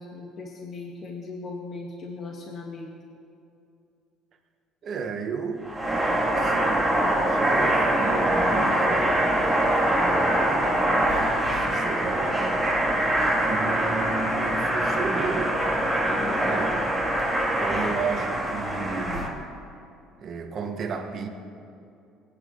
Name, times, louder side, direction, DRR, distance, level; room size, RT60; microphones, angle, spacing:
voice 1, 0.0-2.9 16.0-16.5, left 3 dB, 45° left, -1 dB, 1.8 m, -38 dB
voice 2, 4.8-5.8 6.2-7.0 7.2-9.3 9.9-10.7 11.5-12.4 13.5-15.6 16.4-16.8 17.6-19.5 20.2-21.3, right 5 dB, 45° right, 3 dB, 1.6 m, -33 dB
sound 1, 5.6-19.3, right 1 dB, 5° right, 2.5 m, -24 dB
22.0 x 9.9 x 4.0 m, 2.6 s
cardioid pair, 110°, 0 cm